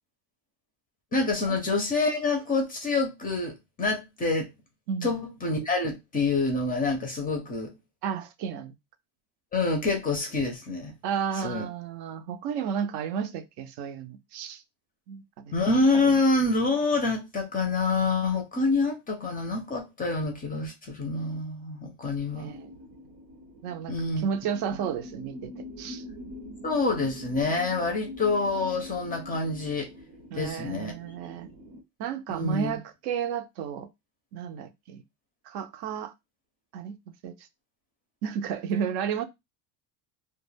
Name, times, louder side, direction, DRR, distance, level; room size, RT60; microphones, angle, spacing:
voice 1, 1.1-4.5 5.0-7.7 9.5-10.9 11.4-11.7 15.5-22.5 23.9-24.3 26.6-29.9 30.4-30.9 32.3-32.8, left 3 dB, 20° left, 0.4 m, -27 dB
voice 2, 4.9-5.2 8.0-8.7 11.0-14.6 15.1-15.6 22.4-22.7 23.6-26.0 30.3-31.5 32.0-33.9 34.3-35.0 35.5-36.1 36.7-37.0 37.2-37.3 38.2-39.2, right 7 dB, 60° right, 0.5 m, -32 dB
sound 1, 22.4-31.8, left 1 dB, 85° right, 0.8 m, -44 dB
2.2 x 2.1 x 3.1 m
cardioid pair, 145°, 45 cm